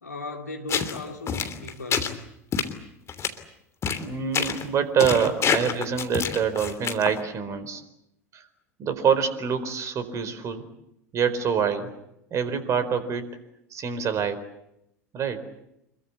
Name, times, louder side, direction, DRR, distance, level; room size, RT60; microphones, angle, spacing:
voice 1, 0.0-2.2, left 2 dB, 85° left, 2 dB, 2.7 m, -37 dB
sound 1, 0.7-1.0 1.3-2.1 2.5-2.7 3.1-3.3 3.8-4.0 4.3-4.7 5.0-7.2, left 7 dB, 30° left, 3.0 m, -26 dB
voice 2, 3.9-7.8 8.3-8.4 8.8-10.6 11.1-11.9 12.3-13.2 13.7-14.4 15.1-15.4, right 7 dB, 35° right, 12 dB, 4.4 m, -25 dB
27.0 x 22.5 x 8.4 m, 0.82 s
figure-of-eight pair, 75°, 9 cm